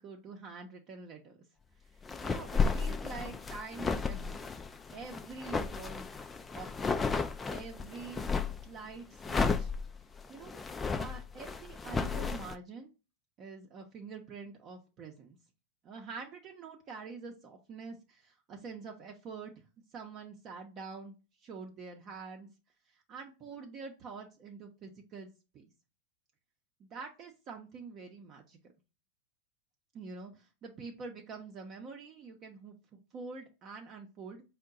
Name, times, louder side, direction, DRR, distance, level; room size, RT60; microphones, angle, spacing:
voice 1, 0.0-1.4 1.9-4.4 4.9-6.1 6.5-7.2 7.5-8.3 8.6-9.7 10.3-12.9 13.4-15.4 15.8-19.5 19.9-22.5 22.9-25.3 25.5-25.7 26.8-28.6 29.9-34.4, right 4 dB, 40° right, 2 dB, 0.7 m, -46 dB
sound 1, 2.0-8.6 9.2-12.5, left 4 dB, 15° left, 0.3 m, -33 dB
4.4 x 2.2 x 3.7 m, 0.29 s
hypercardioid pair, 105°, 0 cm